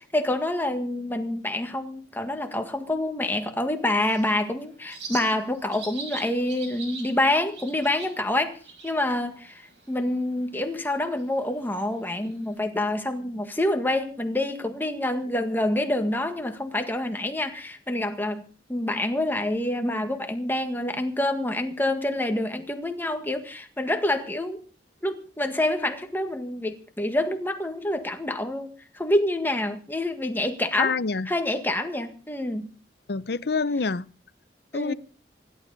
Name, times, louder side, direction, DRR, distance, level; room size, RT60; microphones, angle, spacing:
voice 1, 0.1-8.6 8.8-24.6 25.0-30.9 31.3-32.7 34.7-34.9, left 1 dB, 10° left, 1.6 m, -27 dB
Bird, 3.6-12.6, right 4 dB, 85° right, 6.1 m, -44 dB
voice 2, 30.8-31.3 33.1-34.1 34.7-34.9, left 4 dB, 60° left, 0.7 m, -26 dB
25.5 x 12.0 x 4.1 m
head